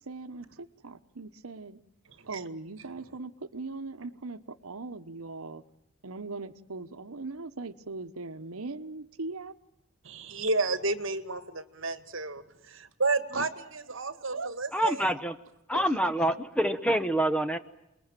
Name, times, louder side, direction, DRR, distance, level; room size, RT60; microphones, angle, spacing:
voice 1, 0.0-1.8 2.3-5.6 6.0-9.5 13.3-14.5 15.7-16.3, right 3 dB, 80° right, 10 dB, 1.0 m, -40 dB
voice 2, 10.0-15.1, right 3 dB, 60° right, 12 dB, 1.9 m, -31 dB
voice 3, 14.7-15.3 15.7-17.6, right 1 dB, 5° left, 11 dB, 0.9 m, -26 dB
29.0 x 21.0 x 9.0 m, 0.88 s
head